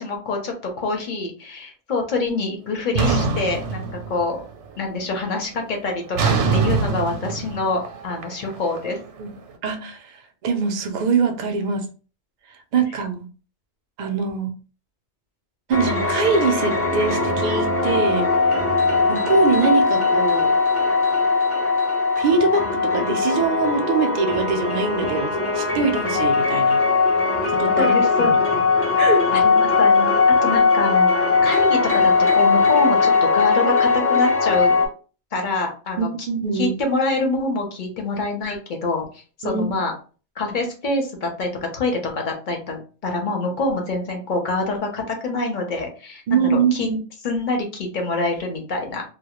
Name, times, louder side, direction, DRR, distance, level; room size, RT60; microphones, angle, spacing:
voice 1, 0.0-4.4 4.8-9.0 27.8-28.3 29.3-30.1 30.4-34.8 35.3-36.1 36.5-39.1 39.4-39.9 40.4-46.9 47.2-49.0, left 3 dB, 50° left, 0.7 m, -26 dB
sound 1, 3.0-4.5 4.8-5.3 6.2-9.2, right 4 dB, 80° right, 0.9 m, -24 dB
voice 2, 9.6-11.9 12.5-13.3 14.0-14.5 15.7-18.3 19.1-20.5 22.2-26.8 27.5-28.6 29.0-29.3 36.0-36.8 39.4-39.7 46.3-47.0, right 5 dB, 60° right, 0.5 m, -23 dB
sound 2, 15.7-34.9, left 4 dB, 20° left, 0.4 m, -19 dB
2.1 x 2.0 x 2.9 m
omnidirectional pair, 1.2 m